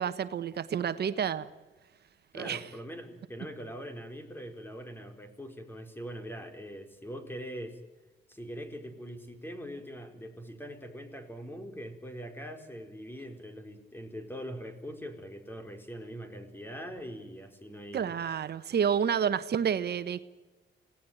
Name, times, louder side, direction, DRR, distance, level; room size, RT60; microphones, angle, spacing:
voice 1, 0.0-1.5 2.3-2.6 17.9-20.2, right 8 dB, 55° right, 12 dB, 1.3 m, -29 dB
voice 2, 2.3-7.8 8.3-18.1, equal, 10° left, 7 dB, 4.5 m, -42 dB
26.5 x 18.0 x 9.2 m, 1.2 s
cardioid pair, 90°, 20 cm